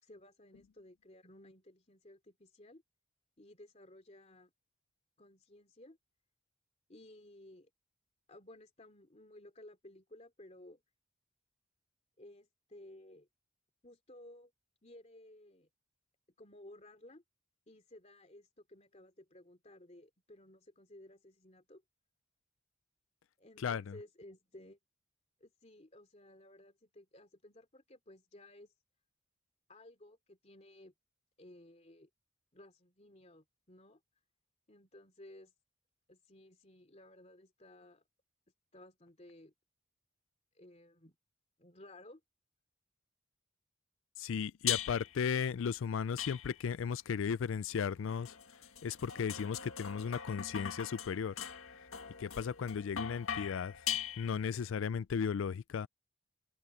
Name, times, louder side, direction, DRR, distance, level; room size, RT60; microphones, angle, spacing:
voice 1, 0.0-2.8 3.4-4.5 5.2-6.0 6.9-7.7 8.3-10.8 12.2-13.3 13.8-14.5 14.8-15.7 16.4-17.2 17.7-21.8 23.4-24.8 25.4-28.7 29.7-30.9 31.4-32.1 32.5-34.0 34.7-35.5 36.1-38.0 38.7-39.5 40.5-41.2 41.6-42.2, left 1 dB, 30° left, 3.0 m, -56 dB
voice 2, 23.6-23.9 44.2-48.4 48.8-51.3 52.2-53.7 54.2-55.9, left 6 dB, 70° left, 0.4 m, -35 dB
sound 1, 44.7-45.2 46.2-46.8 47.8-54.6, left 9 dB, 90° left, 1.8 m, -41 dB
head